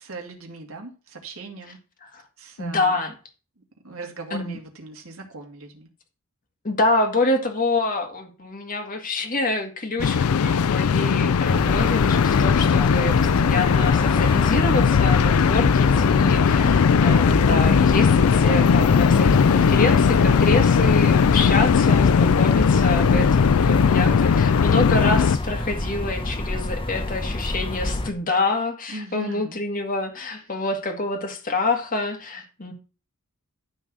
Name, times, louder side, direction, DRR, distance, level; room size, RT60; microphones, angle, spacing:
voice 1, 0.0-1.8 2.4-2.9 3.8-5.9 15.2-15.8 28.9-29.6, right 3 dB, 75° right, 2.4 m, -39 dB
voice 2, 2.6-3.1 4.3-4.6 6.6-32.7, left 2 dB, 40° left, 2.1 m, -26 dB
sound 1, 10.0-25.4, left 6 dB, 85° left, 0.4 m, -18 dB
sound 2, 11.4-28.1, left 1 dB, 25° left, 0.9 m, -28 dB
12.0 x 4.1 x 6.1 m
head